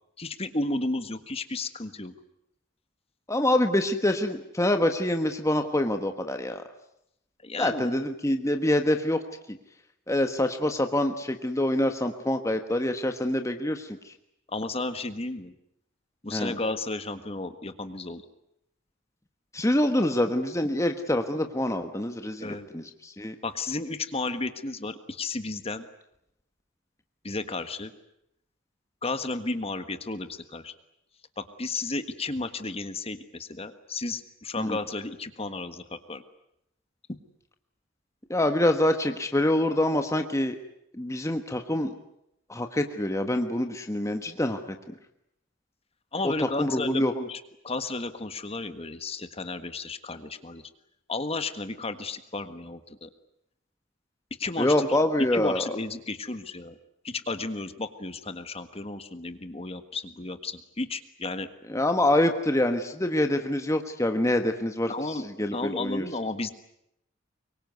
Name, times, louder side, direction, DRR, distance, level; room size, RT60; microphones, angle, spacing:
voice 1, 0.2-2.1 7.4-7.9 14.5-15.5 16.2-18.2 22.4-22.7 23.4-25.8 27.2-27.9 29.0-30.7 31.4-36.2 37.1-37.2 46.1-50.6 51.1-53.1 54.4-55.0 55.3-56.8 57.0-61.5 64.9-65.3 65.5-66.5, left 3 dB, 30° left, 10 dB, 1.6 m, -33 dB
voice 2, 3.3-6.6 7.6-9.2 9.5-9.6 10.1-13.9 16.3-16.5 19.5-23.3 34.6-34.8 38.3-40.6 40.9-41.9 42.5-44.6 46.6-47.1 54.6-55.7 61.7-66.0, left 1 dB, 15° left, 6 dB, 1.4 m, -26 dB
24.5 x 23.5 x 9.5 m, 0.79 s
head